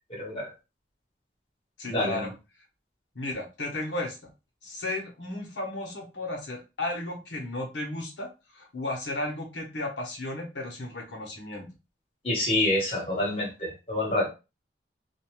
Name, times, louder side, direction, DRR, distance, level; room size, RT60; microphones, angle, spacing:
voice 1, 0.1-0.5 1.8-2.3 12.2-14.3, left 1 dB, 30° left, -3 dB, 1.2 m, -27 dB
voice 2, 1.8-2.3 3.1-4.3 4.6-11.7, left 2 dB, 85° left, 1 dB, 1.0 m, -34 dB
2.5 x 2.3 x 3.1 m, 0.29 s
head